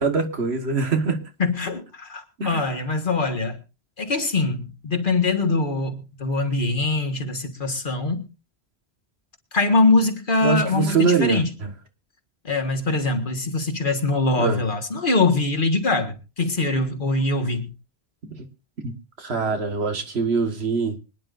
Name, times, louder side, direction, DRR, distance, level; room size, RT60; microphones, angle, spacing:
voice 1, 0.0-1.2 2.4-2.7 10.4-11.7 14.4-14.6 18.3-18.4 18.8-21.0, right 5 dB, 80° right, 1.8 m, -23 dB
voice 2, 1.4-3.6 4.0-8.2 9.5-11.5 12.4-17.7, left 3 dB, 55° left, 1.8 m, -23 dB
24.5 x 10.0 x 2.6 m
omnidirectional pair, 1.1 m